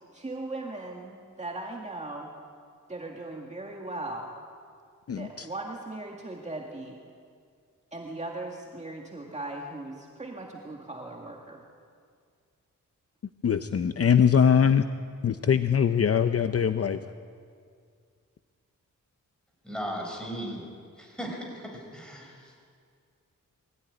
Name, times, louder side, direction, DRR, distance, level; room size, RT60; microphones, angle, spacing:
voice 1, 0.1-2.3 2.9-4.3 5.1-7.0 7.9-11.6, right 2 dB, 20° right, 0 dB, 2.1 m, -38 dB
voice 2, 5.1-5.5 13.4-14.9 15.2-17.0, left 7 dB, 50° left, 9 dB, 0.7 m, -22 dB
voice 3, 19.6-20.6 21.0-22.5, equal, 5° left, 0 dB, 6.3 m, -37 dB
22.5 x 16.5 x 9.9 m, 2.2 s
wide cardioid pair, 135°, 32 cm